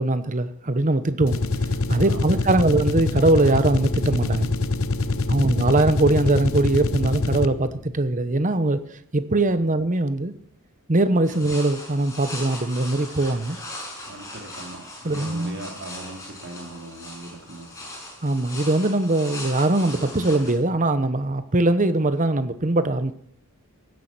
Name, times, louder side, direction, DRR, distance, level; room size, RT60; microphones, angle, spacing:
voice 1, 0.0-1.4 1.9-4.6 5.3-8.8 9.1-10.3 10.9-13.6 15.0-15.6 18.2-23.1, right 2 dB, 35° right, 1.0 m, -21 dB
sound 1, 1.2-7.8, left 3 dB, 65° left, 0.9 m, -25 dB
voice 2, 2.0-2.4 5.0-5.5 11.2-11.4 14.0-17.7, right 1 dB, 55° right, 3.4 m, -39 dB
sound 2, 11.2-20.5, left 1 dB, 15° left, 5.9 m, -39 dB
16.5 x 9.7 x 6.1 m
head